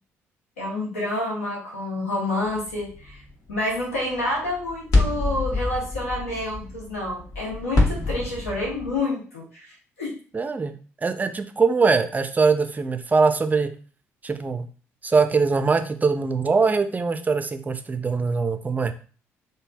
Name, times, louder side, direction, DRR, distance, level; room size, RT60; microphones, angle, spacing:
voice 1, 0.6-3.2 3.5-10.1, left 2 dB, 80° left, -4 dB, 0.8 m, -28 dB
sound 1, 2.4-9.0, left 2 dB, 50° left, 1.1 m, -27 dB
voice 2, 10.3-10.7 11.0-13.7 14.2-14.7 15.0-18.9, right 4 dB, 20° right, 9 dB, 0.4 m, -22 dB
3.1 x 2.7 x 2.2 m, 0.40 s
figure-of-eight pair, 45°, 7 cm